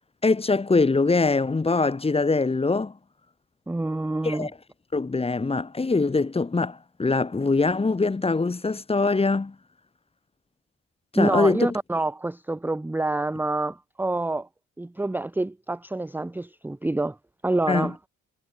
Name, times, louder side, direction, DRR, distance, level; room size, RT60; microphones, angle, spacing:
voice 1, 0.2-2.9 4.2-4.5 4.9-9.5 11.1-11.8 17.7-17.9, left 3 dB, 20° left, 1.3 m, -23 dB
voice 2, 3.7-4.5 11.1-14.5 14.8-17.2 17.4-18.0, right 2 dB, 5° right, 0.6 m, -27 dB
cardioid pair, 90°, 30 cm